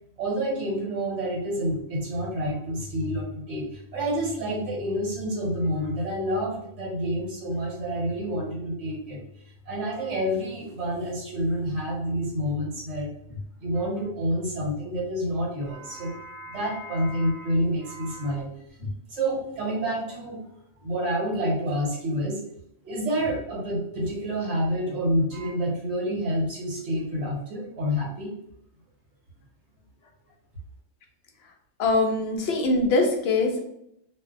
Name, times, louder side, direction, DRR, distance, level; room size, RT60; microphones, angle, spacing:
voice 1, 0.2-9.2 9.7-18.5 18.8-20.4 20.8-22.4 22.8-28.3, equal, 70° right, -5 dB, 1.3 m, -28 dB
voice 2, 31.8-33.6, left 2 dB, 65° left, 2 dB, 0.7 m, -22 dB
2.5 x 2.0 x 2.5 m, 0.75 s
omnidirectional pair, 1.3 m